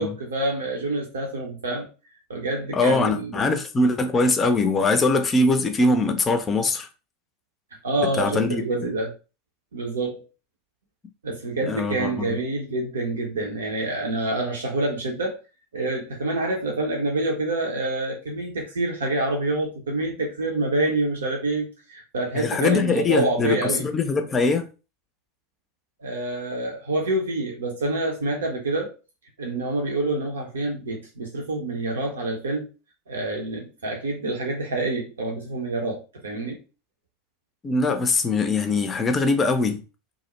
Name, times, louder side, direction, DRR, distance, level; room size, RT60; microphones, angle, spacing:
voice 1, 0.0-1.9 2.3-3.5 7.8-9.1 9.7-10.2 11.2-15.4 15.7-23.9 26.0-28.9 29.4-32.7 33.1-36.6, right 2 dB, 70° right, 0.7 m, -27 dB
voice 2, 2.7-6.9 8.2-8.6 11.7-12.3 22.3-24.7 37.6-39.8, left 3 dB, 25° left, 0.5 m, -22 dB
2.4 x 2.0 x 3.0 m
figure-of-eight pair, 80°, 0 cm